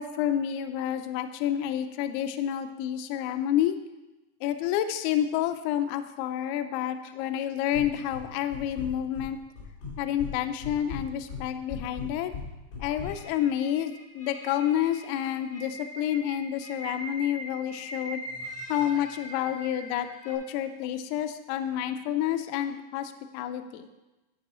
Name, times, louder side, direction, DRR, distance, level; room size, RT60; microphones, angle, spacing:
voice 1, 0.0-3.8 4.4-9.4 10.0-12.3 12.8-18.2 18.7-23.9, left 10 dB, 90° left, 9 dB, 2.2 m, -29 dB
sound 1, 7.7-8.2 8.5-9.3 9.6-10.3 10.6-13.1, left 5 dB, 75° left, 5.1 m, -37 dB
sound 2, 13.0-20.3, equal, 10° left, 1.1 m, -42 dB
12.0 x 4.8 x 4.3 m, 1.1 s
omnidirectional pair, 5.1 m